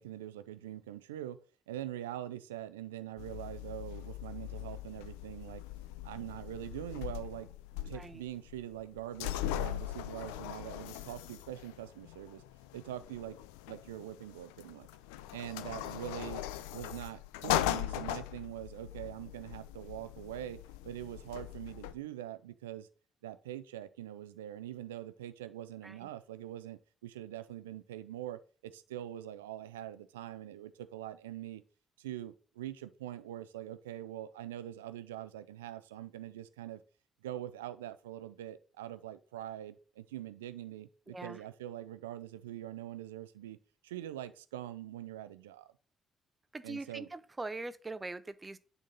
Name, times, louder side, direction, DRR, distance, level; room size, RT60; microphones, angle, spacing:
voice 1, 0.0-1.4 1.7-5.6 6.0-7.5 7.9-12.4 12.7-13.4 13.7-14.9 15.3-16.4 16.7-20.6 20.8-22.9 23.2-31.6 32.0-36.8 37.2-43.6 43.8-45.7 46.6-47.1, right 12 dB, 80° right, 0.4 m, -43 dB
sound 1, 3.2-21.9, left 13 dB, 75° left, 0.3 m, -40 dB
voice 2, 41.1-41.4 46.5-48.6, right 2 dB, 25° right, 0.7 m, -42 dB
9.0 x 4.0 x 3.8 m
figure-of-eight pair, 45°, 0 cm